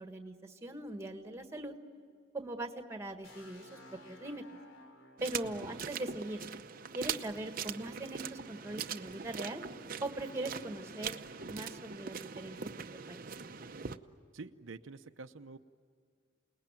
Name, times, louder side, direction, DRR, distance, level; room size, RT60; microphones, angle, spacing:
voice 1, 0.0-1.7 2.3-3.8 4.1-4.4 5.2-6.4 6.9-9.6 10.0-11.2 11.5-13.2, right 2 dB, 15° right, 6 dB, 1.6 m, -41 dB
sound 1, 3.2-7.1, left 2 dB, 85° left, 3.7 m, -57 dB
sound 2, 5.2-14.0, right 6 dB, 45° right, 0.8 m, -42 dB
voice 2, 5.5-5.9 14.3-15.6, right 3 dB, 85° right, 7 dB, 0.8 m, -48 dB
28.5 x 20.0 x 9.0 m, 2.2 s
head